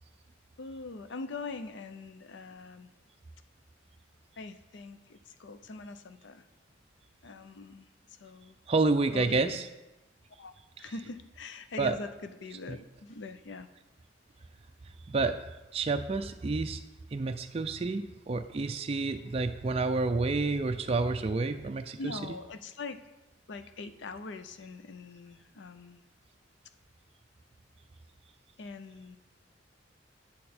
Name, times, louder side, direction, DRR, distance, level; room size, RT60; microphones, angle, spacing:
voice 1, 0.6-2.9 4.4-6.5 7.2-8.6 9.1-9.6 10.4-13.7 22.0-23.0 23.5-26.0 28.6-29.2, left 3 dB, 65° left, 10 dB, 0.5 m, -43 dB
voice 2, 8.7-9.7 11.8-12.0 12.7-12.8 15.1-15.4 15.7-16.8 17.1-22.3, right 3 dB, 30° right, 7 dB, 0.4 m, -29 dB
8.5 x 7.7 x 4.3 m, 1.0 s
head